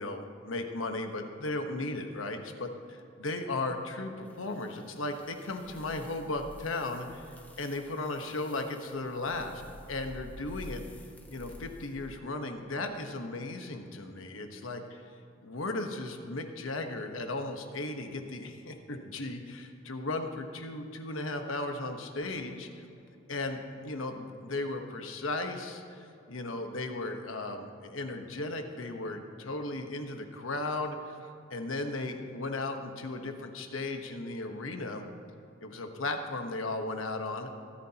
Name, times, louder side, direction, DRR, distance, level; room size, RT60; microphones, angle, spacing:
voice 1, 0.0-9.6 9.9-10.8 11.3-15.0 15.4-22.8 23.3-31.2 31.5-35.0 35.6-37.5, left 2 dB, 80° left, 5 dB, 1.2 m, -36 dB
sound 1, 4.3-12.2, left 1 dB, 10° left, 0.8 m, -50 dB
24.5 x 9.7 x 2.9 m, 2.7 s
head